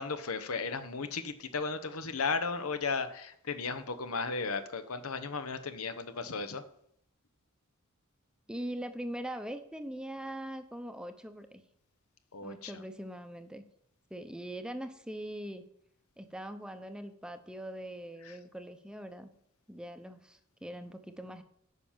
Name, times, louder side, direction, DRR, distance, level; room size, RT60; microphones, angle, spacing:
voice 1, 0.0-6.6 12.3-12.7, left 4 dB, 80° left, 10 dB, 1.0 m, -35 dB
voice 2, 8.5-11.6 12.4-13.6 14.1-15.7 16.2-19.3 19.7-21.4, right 1 dB, 5° right, 8 dB, 0.7 m, -42 dB
9.5 x 5.8 x 7.3 m, 0.70 s
head